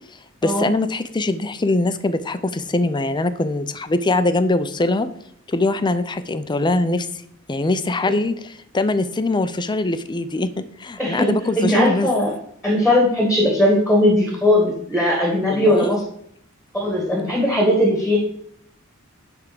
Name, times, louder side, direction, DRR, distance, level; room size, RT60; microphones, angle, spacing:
voice 1, 0.4-5.1 5.5-7.1 7.5-12.1 15.5-15.9, left 2 dB, 20° left, 12 dB, 0.5 m, -22 dB
voice 2, 11.0-12.3 12.6-16.0 16.7-18.2, left 1 dB, ahead, -1 dB, 1.7 m, -18 dB
10.5 x 3.6 x 6.7 m, 0.69 s
head